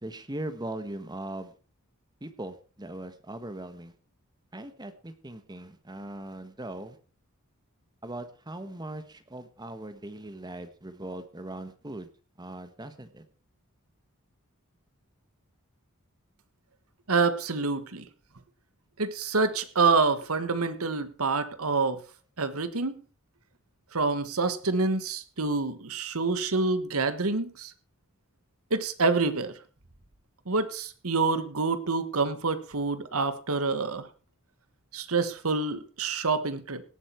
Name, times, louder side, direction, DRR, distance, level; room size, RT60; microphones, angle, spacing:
voice 1, 0.0-1.5 2.2-3.9 4.5-7.0 8.0-12.1 12.4-13.2, right 1 dB, 20° right, 10 dB, 1.3 m, -39 dB
voice 2, 17.1-18.1 19.0-22.0 22.4-23.0 23.9-27.7 28.7-29.5 30.5-34.1 34.9-36.8, right 4 dB, 75° right, 12 dB, 1.4 m, -27 dB
17.5 x 8.5 x 4.5 m, 0.37 s
head